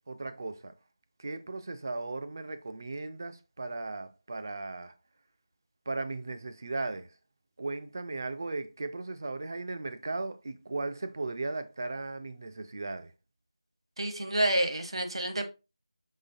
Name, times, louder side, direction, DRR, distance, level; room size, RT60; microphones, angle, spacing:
voice 1, 0.1-0.7 1.2-4.9 5.9-7.1 7.6-13.1, right 3 dB, 35° right, 0.4 m, -36 dB
voice 2, 14.0-15.4, right 1 dB, 60° right, 0.9 m, -28 dB
5.5 x 3.2 x 2.5 m
figure-of-eight pair, 170°, 3 cm